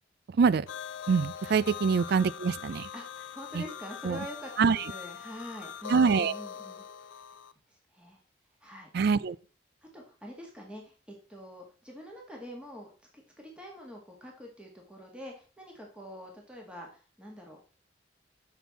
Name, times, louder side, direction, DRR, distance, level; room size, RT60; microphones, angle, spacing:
sound 1, 0.7-7.5, left 8 dB, 85° left, 0.4 m, -42 dB
voice 1, 1.1-2.9 3.5-3.6 4.0-4.2 4.6-4.8 5.9-6.3 8.9-9.4, right 5 dB, 60° right, 0.4 m, -24 dB
voice 2, 2.9-7.3 7.7-8.2 8.6-8.9 9.9-17.6, equal, 5° right, 1.6 m, -45 dB
7.3 x 6.0 x 4.1 m
head